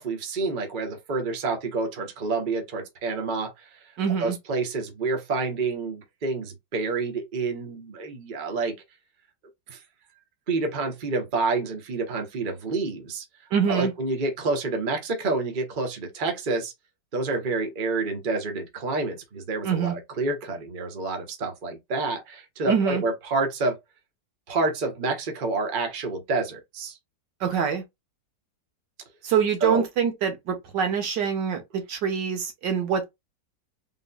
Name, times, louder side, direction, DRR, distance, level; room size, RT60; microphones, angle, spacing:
voice 1, 0.0-3.9 4.2-8.8 9.7-9.8 10.5-13.2 13.7-16.7 17.1-23.8 24.5-27.0 29.6-29.8, right 3 dB, 35° right, 1.0 m, -28 dB
voice 2, 4.0-4.4 13.5-13.9 19.6-19.9 22.7-23.0 27.4-27.8 29.2-33.0, right 7 dB, 75° right, 1.7 m, -25 dB
3.9 x 3.5 x 2.2 m
omnidirectional pair, 1.9 m